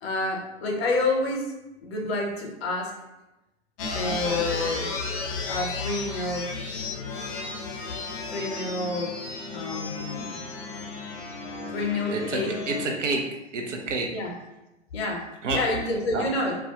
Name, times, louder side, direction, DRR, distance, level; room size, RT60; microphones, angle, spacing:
voice 1, 0.0-1.5 1.8-2.9 3.9-4.9 5.5-6.6 8.3-9.1 9.5-10.5 11.7-12.5 14.1-14.3 14.9-15.3 15.5-16.6, left 2 dB, 60° left, 0 dB, 0.7 m, -28 dB
sound 1, 3.8-12.9, left 4 dB, 30° left, 0.4 m, -33 dB
voice 2, 12.1-13.3 13.5-14.1 15.4-15.6 16.1-16.2, right 3 dB, 80° right, 2 dB, 0.6 m, -28 dB
2.3 x 2.1 x 2.8 m, 0.96 s
figure-of-eight pair, 100°, 36 cm